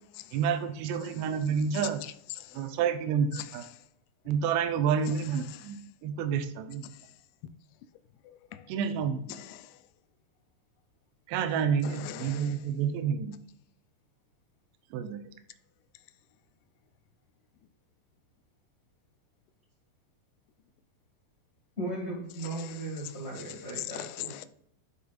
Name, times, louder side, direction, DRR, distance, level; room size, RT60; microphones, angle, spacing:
voice 1, 0.3-2.0 2.5-3.7 4.3-6.9 8.7-9.4 11.3-13.5 14.9-15.2, right 7 dB, 85° right, 2.8 m, -29 dB
voice 2, 1.7-2.7 3.3-3.5 5.1-5.2 5.5-5.7 6.9-7.0 8.2-8.7 9.3-9.8 11.8-12.6 22.6-22.8 23.4-24.5, left 14 dB, 85° left, 2.5 m, -41 dB
voice 3, 21.8-24.3, right 2 dB, 35° left, 1.1 m, -37 dB
11.5 x 5.0 x 2.4 m
omnidirectional pair, 4.8 m